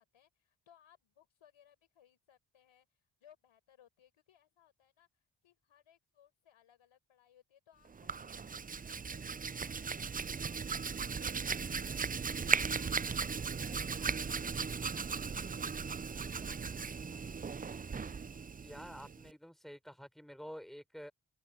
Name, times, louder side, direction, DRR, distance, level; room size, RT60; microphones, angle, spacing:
voice 1, 0.0-2.9 3.2-5.1 5.4-12.1 12.5-17.5, left 10 dB, 80° left, 5.0 m, -67 dB
Hands, 7.9-19.3, right 5 dB, 20° right, 0.4 m, -37 dB
voice 2, 18.6-21.1, equal, ahead, 6.2 m, -49 dB
open air
supercardioid pair, 40°, 47 cm